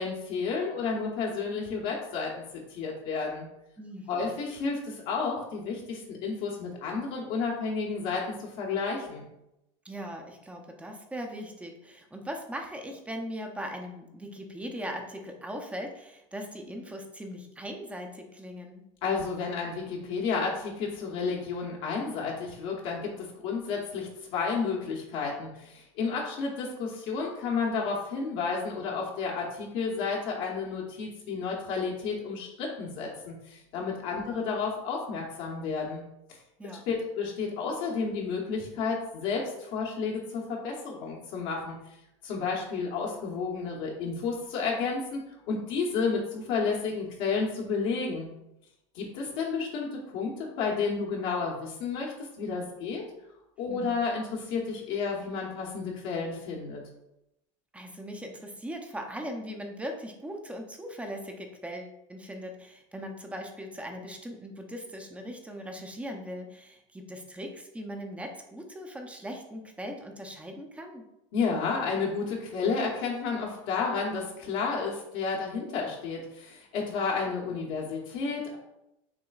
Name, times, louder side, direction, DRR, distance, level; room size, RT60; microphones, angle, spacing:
voice 1, 0.0-2.3 2.7-3.5 4.1-9.3 19.0-36.0 36.9-41.8 42.2-48.3 48.9-53.0 53.6-56.8 71.3-78.6, left 5 dB, 60° left, -2 dB, 1.0 m, -31 dB
voice 2, 3.8-4.3 9.8-18.8 34.1-34.5 36.6-36.9 53.7-53.9 57.7-71.0, equal, 10° right, 3 dB, 0.6 m, -39 dB
5.9 x 3.1 x 2.4 m, 0.87 s
supercardioid pair, 120°, 16 cm